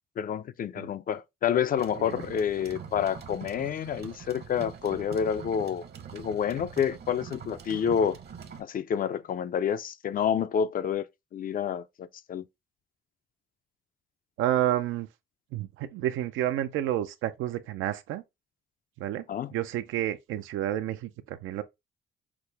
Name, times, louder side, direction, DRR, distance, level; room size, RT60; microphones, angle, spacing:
voice 1, 0.2-5.8 6.1-8.2 8.6-11.1 11.3-12.4 19.3-19.5, left 8 dB, 45° left, 0.4 m, -28 dB
sound 1, 1.8-8.6, right 7 dB, 55° right, 0.9 m, -44 dB
voice 2, 14.4-15.1 15.5-18.2 19.0-19.2 19.5-21.6, right 12 dB, 90° right, 0.5 m, -30 dB
5.9 x 2.0 x 3.3 m
cardioid pair, 90°, 20 cm